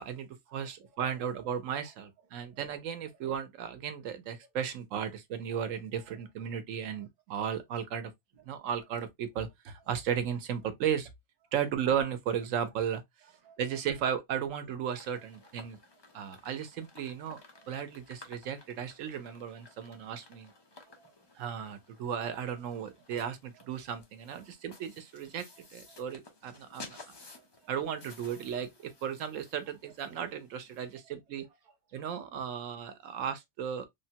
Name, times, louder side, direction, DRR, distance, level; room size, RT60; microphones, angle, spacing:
voice 1, 0.0-8.1 8.4-11.1 11.5-13.0 13.6-15.8 16.1-17.4 17.7-20.5 21.4-25.5 25.7-27.0 27.7-31.5 31.9-33.9, right 8 dB, 85° right, 1.0 m, -35 dB
voice 2, 13.2-13.8 14.9-15.3 15.6-15.7 17.5-17.7 20.7-21.1 23.5-23.7 24.3-24.8 25.5-26.0 26.7-26.9 27.3-27.7 28.3-28.4 31.0-31.1 31.4-31.7, right 6 dB, 40° right, 0.7 m, -62 dB
sound 1, 15.0-31.0, left 3 dB, 35° left, 0.4 m, -55 dB
3.4 x 2.1 x 2.7 m
omnidirectional pair, 1.3 m